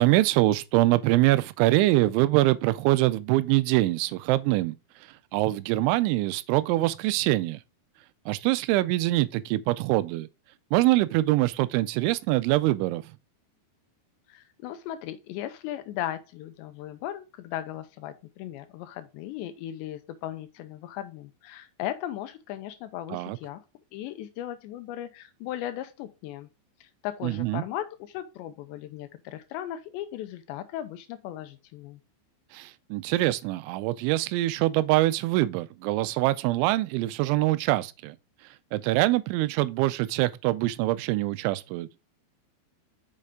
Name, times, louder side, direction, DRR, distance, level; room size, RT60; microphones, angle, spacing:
voice 1, 0.0-4.8 5.3-7.6 8.3-10.3 10.7-13.0 23.1-23.4 27.2-27.6 32.5-38.2 38.7-41.9, right 17 dB, 90° right, 3.0 m, -24 dB
voice 2, 14.3-23.6 23.9-26.5 26.8-32.0, left 12 dB, 80° left, 2.8 m, -37 dB
6.7 x 6.4 x 3.5 m
omnidirectional pair, 5.3 m